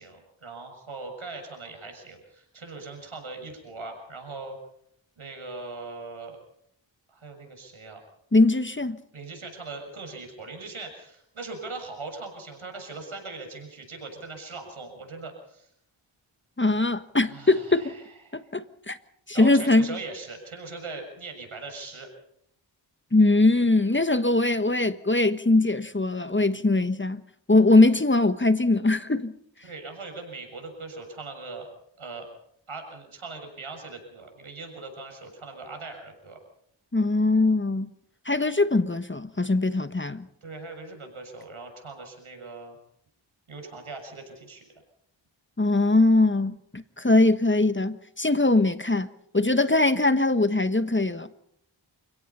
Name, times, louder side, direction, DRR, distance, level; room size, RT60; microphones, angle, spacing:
voice 1, 0.0-4.6 5.2-6.4 7.1-8.0 9.1-15.7 17.3-18.4 19.3-22.1 29.6-31.7 32.0-32.3 32.7-36.4 40.4-42.8 43.5-44.6, right 3 dB, 85° right, 7.0 m, -40 dB
voice 2, 8.3-9.0 16.6-17.9 18.3-19.0 19.3-20.0 23.1-27.2 27.5-29.3 36.9-37.9 38.2-40.3 45.6-51.3, left 2 dB, 25° left, 1.4 m, -21 dB
29.0 x 17.0 x 5.6 m
cardioid pair, 40°, 48 cm